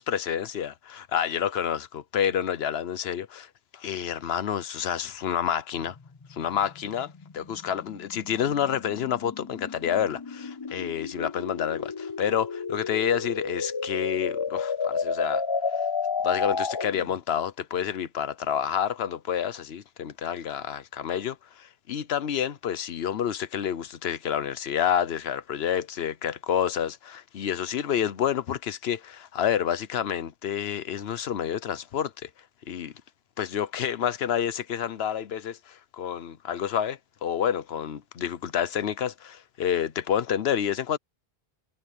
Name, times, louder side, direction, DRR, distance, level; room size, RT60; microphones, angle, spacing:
voice 1, 0.0-6.0 6.3-15.4 16.2-32.3 32.7-32.9 33.4-41.0, left 9 dB, 80° left, 1.1 m, -29 dB
sound 1, 6.0-17.1, left 5 dB, 30° left, 0.5 m, -32 dB
omnidirectional pair, 1.0 m